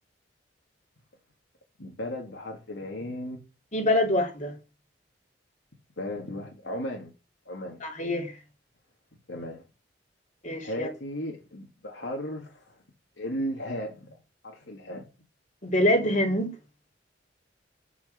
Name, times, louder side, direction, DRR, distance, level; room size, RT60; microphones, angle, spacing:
voice 1, 1.8-3.4 6.0-7.1 7.5-7.8 9.3-9.6 10.6-12.7 13.2-14.2 14.4-15.0, equal, 85° left, 2.7 m, -35 dB
voice 2, 3.7-4.5 7.8-8.4 10.4-10.9 15.6-16.5, left 1 dB, 40° left, 3.1 m, -25 dB
8.7 x 7.0 x 6.8 m
head